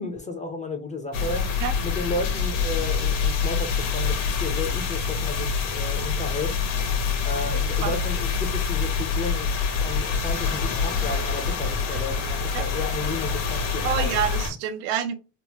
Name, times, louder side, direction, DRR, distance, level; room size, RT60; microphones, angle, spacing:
voice 1, 0.0-1.5 1.8-6.6 7.2-14.2, left 2 dB, 15° left, 0.5 m, -33 dB
sound 1, 1.1-14.5, left 5 dB, 70° left, 1.2 m, -26 dB
voice 2, 13.8-15.2, right 9 dB, 90° right, 0.7 m, -27 dB
3.5 x 2.0 x 2.9 m
cardioid pair, 120°, 48 cm